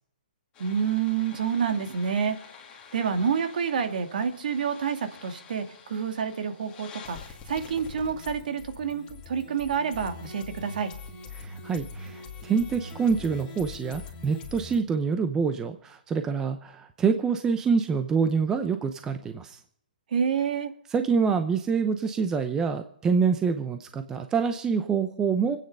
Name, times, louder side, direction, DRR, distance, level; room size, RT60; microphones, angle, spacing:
sound 1, 0.5-14.8, left 4 dB, 20° left, 2.4 m, -44 dB
voice 1, 0.6-2.4 2.9-10.9 20.1-20.7, right 7 dB, 60° right, 6 dB, 2.3 m, -28 dB
voice 2, 11.4-19.6 20.9-25.6, right 5 dB, 10° right, 8 dB, 0.7 m, -26 dB
24.5 x 9.3 x 5.5 m, 0.66 s
hypercardioid pair, 160°, 5 cm